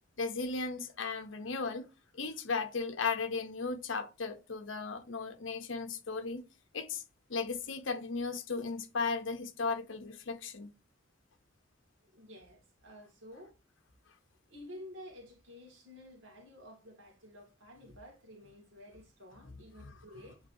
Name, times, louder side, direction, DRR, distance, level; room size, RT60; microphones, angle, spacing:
voice 1, 0.2-1.9 2.1-6.4 6.7-7.0 7.3-10.7, left 4 dB, 75° left, 0.8 m, -36 dB
voice 2, 12.0-13.6 14.5-20.4, left 1 dB, 90° right, 2.3 m, -52 dB
8.9 x 3.9 x 2.8 m
head